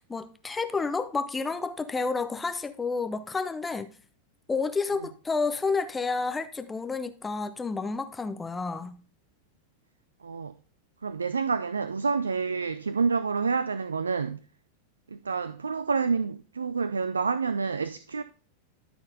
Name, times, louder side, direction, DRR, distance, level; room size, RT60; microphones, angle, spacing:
voice 1, 0.0-3.9 4.5-9.0, left 4 dB, 15° left, 0.6 m, -30 dB
voice 2, 10.2-10.5 11.0-14.4 15.1-18.2, right 5 dB, 75° right, 0.3 m, -28 dB
12.0 x 4.3 x 3.8 m
figure-of-eight pair, 90°, 0 cm